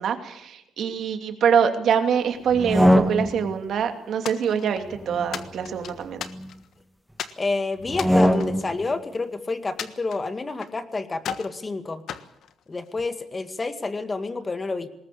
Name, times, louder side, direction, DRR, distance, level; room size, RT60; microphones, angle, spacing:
voice 1, 0.0-6.2, right 7 dB, 65° right, 6 dB, 2.7 m, -24 dB
sound 1, 2.5-3.6 4.8-6.5 7.8-8.8, equal, 5° right, 1.7 m, -23 dB
sound 2, 4.2-4.9 5.3-6.7 7.2-7.4 7.9-9.2 9.8-10.8 11.2-11.6 12.1-13.1, left 8 dB, 70° left, 1.3 m, -36 dB
voice 2, 7.4-12.0 12.7-14.9, left 3 dB, 25° left, 9 dB, 2.1 m, -29 dB
20.5 x 18.5 x 8.6 m, 0.82 s
cardioid pair, 90°, 0 cm